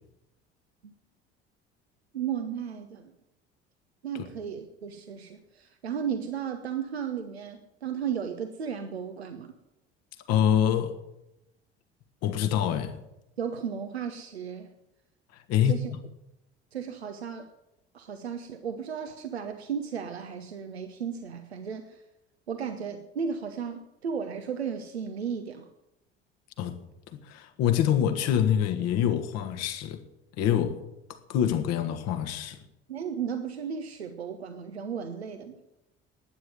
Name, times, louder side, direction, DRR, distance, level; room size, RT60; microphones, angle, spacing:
voice 1, 2.1-3.1 4.0-9.5 13.4-14.7 15.7-15.9 16.7-17.5 17.9-22.0 22.5-25.7 32.9-35.6, right 7 dB, 80° right, 0.9 m, -34 dB
voice 2, 10.3-10.9 12.2-13.0 15.5-15.8 26.6-26.8 27.1-30.0 30.4-30.8 31.3-32.6, left 9 dB, 55° left, 1.6 m, -25 dB
12.0 x 9.4 x 9.1 m
figure-of-eight pair, 60°, 31 cm